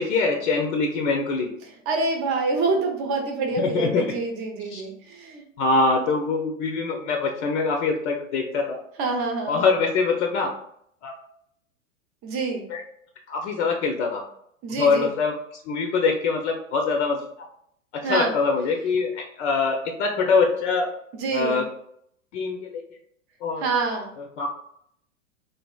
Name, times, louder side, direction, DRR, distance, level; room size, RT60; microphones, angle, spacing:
voice 1, 0.0-1.5 3.6-4.1 4.7-4.8 5.6-8.8 9.5-10.5 11.0-11.1 12.7-12.8 13.3-14.2 14.8-15.4 15.7-17.5 17.9-20.9 21.3-21.7 22.3-22.8 23.4-23.7 24.4-24.5, left 4 dB, 60° left, 2 dB, 0.6 m, -24 dB
voice 2, 1.6-5.4 9.0-9.6 12.2-12.7 14.6-15.1 18.0-18.3 21.1-21.6 23.6-24.1, right 3 dB, 35° right, 3 dB, 0.7 m, -26 dB
3.3 x 2.4 x 2.3 m, 0.69 s
hypercardioid pair, 100°, 41 cm